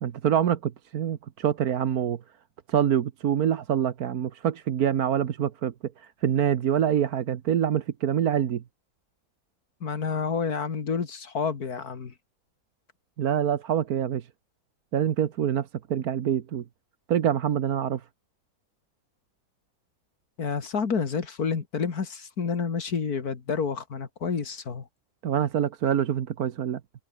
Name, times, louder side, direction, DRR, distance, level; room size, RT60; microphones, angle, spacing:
voice 1, 0.0-2.2 2.7-8.6 13.2-14.3 14.9-16.6 17.1-18.0 25.2-26.8, right 9 dB, 80° right, 1.5 m, -25 dB
voice 2, 9.8-12.1 20.4-24.8, left 5 dB, 80° left, 2.5 m, -29 dB
omnidirectional pair, 1.6 m